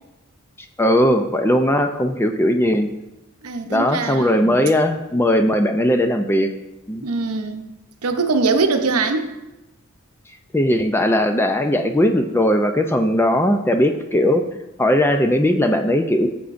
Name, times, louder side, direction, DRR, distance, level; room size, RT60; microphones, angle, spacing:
voice 1, 0.8-2.9 3.7-6.5 6.9-7.1 10.5-14.4 14.8-16.3, left 1 dB, 10° left, 6 dB, 0.4 m, -18 dB
voice 2, 3.4-4.5 7.0-7.6 8.0-9.3, right 4 dB, 85° right, 6 dB, 0.8 m, -22 dB
14.5 x 6.9 x 2.6 m, 0.98 s
head